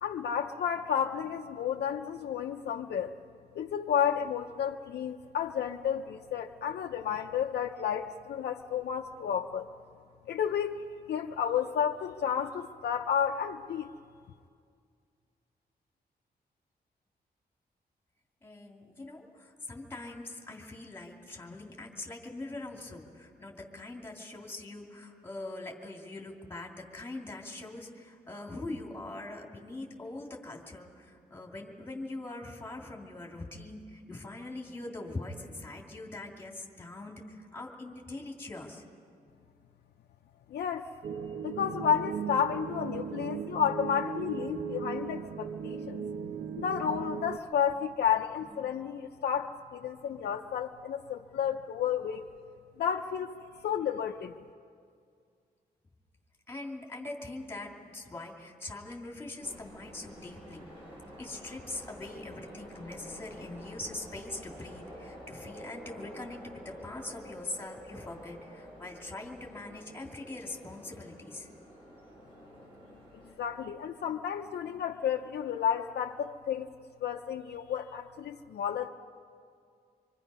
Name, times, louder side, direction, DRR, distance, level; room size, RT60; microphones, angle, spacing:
voice 1, 0.0-3.1 3.5-9.7 10.3-13.9 40.5-40.9 41.4-46.0 46.6-52.3 52.8-53.3 53.6-54.3 73.4-76.7 77.0-78.9, left 8 dB, 80° left, 1 dB, 0.6 m, -31 dB
voice 2, 18.4-38.8 44.5-44.6 46.6-46.7 48.4-48.6 56.5-60.7 61.2-71.5, left 2 dB, 15° left, 0 dB, 2.3 m, -42 dB
sound 1, 41.0-47.4, right 7 dB, 85° right, 0.7 m, -37 dB
sound 2, 59.4-73.3, equal, 30° right, 7.4 m, -49 dB
25.5 x 24.5 x 5.4 m, 2.3 s
wide cardioid pair, 180°, 17 cm